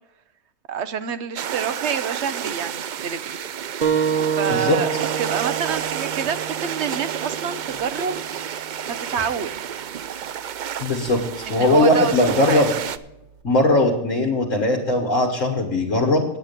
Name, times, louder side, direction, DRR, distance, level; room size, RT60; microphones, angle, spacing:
voice 1, 0.7-3.2 4.3-4.9 5.2-8.3 8.9-9.6 11.5-12.1 12.4-12.6, right 7 dB, 60° right, 13 dB, 1.0 m, -27 dB
sound 1, 1.4-13.0, right 9 dB, 85° right, 0.4 m, -30 dB
sound 2, 3.8-8.9, right 7 dB, 35° right, 1.1 m, -28 dB
voice 2, 10.8-11.2 11.5-12.7 13.4-16.2, left 1 dB, 65° left, 0 dB, 1.8 m, -19 dB
9.8 x 8.9 x 6.6 m, 0.88 s
omnidirectional pair, 1.4 m